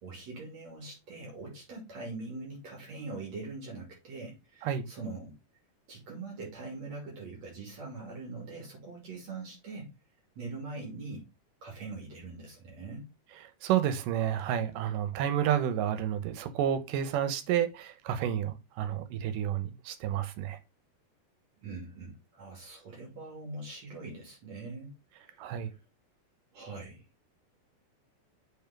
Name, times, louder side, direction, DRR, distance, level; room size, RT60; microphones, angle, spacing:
voice 1, 0.0-5.3 5.9-9.9 10.4-11.3 11.6-13.1 21.6-24.9 25.2-25.5 26.5-27.0, right 3 dB, 55° right, 3.8 m, -42 dB
voice 2, 13.6-20.6 25.4-25.7, right 10 dB, 85° right, 2.5 m, -30 dB
7.2 x 3.9 x 5.8 m
omnidirectional pair, 3.7 m